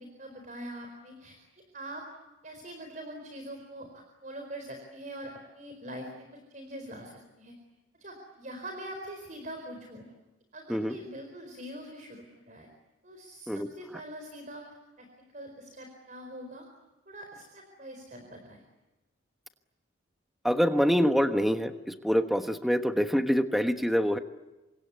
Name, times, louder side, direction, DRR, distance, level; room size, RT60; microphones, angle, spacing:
voice 1, 0.0-1.4 1.7-2.0 2.4-7.5 8.0-10.1 10.5-12.7 13.0-14.6 15.0-15.1 15.3-16.7 17.1-18.6, right 1 dB, 40° right, 4 dB, 4.5 m, -43 dB
voice 2, 20.4-24.2, equal, ahead, 7 dB, 1.2 m, -25 dB
29.0 x 25.0 x 8.3 m, 1.1 s
head